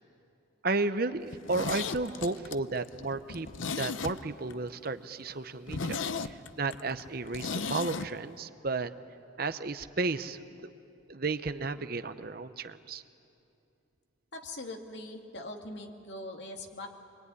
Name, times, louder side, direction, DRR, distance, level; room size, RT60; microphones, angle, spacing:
voice 1, 0.6-3.5 3.7-8.9 9.4-10.7 11.1-13.0, right 3 dB, 50° right, 11 dB, 0.8 m, -33 dB
Zipper (clothing), 1.3-4.5 4.9-5.0 5.3-5.4 5.7-8.1 8.3-8.4, left 5 dB, 80° left, 0.8 m, -36 dB
voice 2, 14.3-16.9, left 2 dB, 60° left, 2 dB, 2.4 m, -42 dB
25.5 x 23.0 x 9.7 m, 2.7 s
head